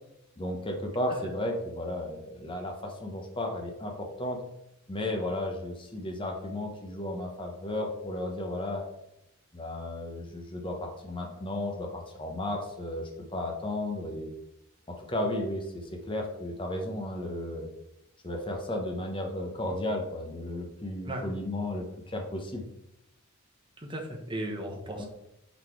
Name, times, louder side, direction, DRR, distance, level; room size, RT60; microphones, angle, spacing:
voice 1, 0.4-4.4 4.9-8.8 9.5-14.3 14.9-17.7 18.2-22.7 25.0-25.1, left 1 dB, 25° left, 2 dB, 0.9 m, -34 dB
voice 2, 23.8-25.0, right 1 dB, 25° right, 0 dB, 1.1 m, -36 dB
5.5 x 4.1 x 4.5 m, 0.83 s
head